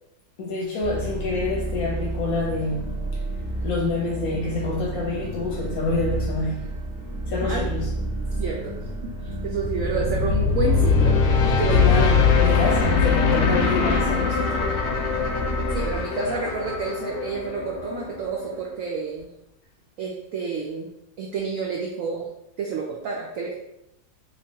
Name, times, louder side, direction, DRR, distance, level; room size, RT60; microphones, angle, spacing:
voice 1, 0.4-3.0 3.6-6.7 7.3-7.9 11.7-14.8, left 2 dB, 65° left, 1.0 m, -27 dB
sound 1, 0.8-16.0, right 1 dB, 10° right, 1.0 m, -31 dB
voice 2, 8.4-8.7 9.0-11.2 11.4-11.9 15.7-19.3 20.0-20.9 21.2-22.3 22.6-23.5, right 4 dB, 80° right, 0.7 m, -29 dB
sound 2, 9.5-18.7, left 5 dB, 90° left, 1.3 m, -22 dB
3.5 x 3.0 x 2.7 m
omnidirectional pair, 1.9 m